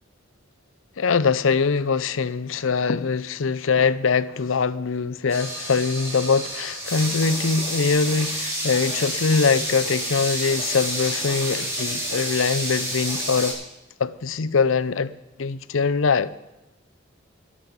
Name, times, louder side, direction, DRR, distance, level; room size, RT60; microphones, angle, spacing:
voice 1, 1.0-13.5 14.0-15.1 15.4-16.3, left 5 dB, 80° left, 0.6 m, -23 dB
sound 1, 5.3-13.5, right 1 dB, 15° right, 4.6 m, -29 dB
20.5 x 7.6 x 5.3 m
head